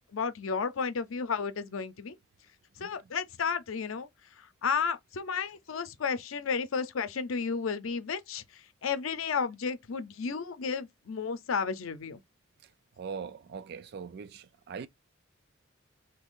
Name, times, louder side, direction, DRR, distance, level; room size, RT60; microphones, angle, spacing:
voice 1, 0.1-2.1 2.8-4.1 4.4-12.2, left 5 dB, 90° left, 0.6 m, -32 dB
voice 2, 13.0-14.9, right 6 dB, 55° right, 0.3 m, -41 dB
2.8 x 2.5 x 3.6 m
head